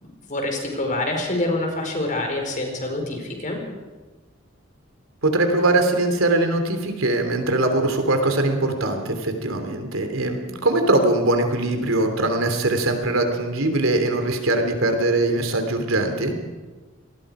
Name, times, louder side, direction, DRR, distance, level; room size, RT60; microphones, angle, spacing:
voice 1, 0.3-3.6, left 2 dB, 40° left, 3 dB, 4.7 m, -26 dB
voice 2, 5.2-16.3, right 2 dB, 85° right, 6 dB, 3.2 m, -21 dB
27.0 x 20.0 x 5.0 m, 1.3 s
head